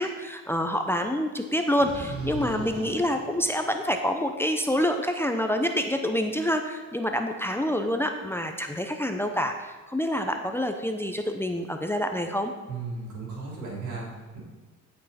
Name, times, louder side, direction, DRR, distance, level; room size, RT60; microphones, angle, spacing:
voice 1, 0.0-12.5, equal, 10° left, 5 dB, 0.7 m, -27 dB
sound 1, 1.8-4.3, right 2 dB, 50° right, 2.0 m, -41 dB
voice 2, 2.1-2.6 12.7-14.4, right 4 dB, 75° right, -3 dB, 3.6 m, -36 dB
15.0 x 5.4 x 4.3 m, 1.3 s
cardioid pair, 90°, 30 cm